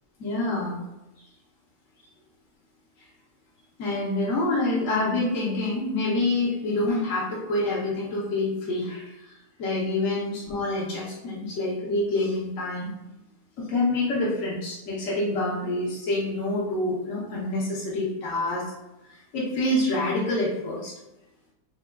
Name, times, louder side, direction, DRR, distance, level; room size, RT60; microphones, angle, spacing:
voice 1, 0.2-0.8 3.8-9.3 9.6-12.9 13.6-18.6 19.1-20.9, left 2 dB, 60° left, -7 dB, 1.2 m, -27 dB
3.7 x 3.6 x 2.2 m, 0.95 s
omnidirectional pair, 1.7 m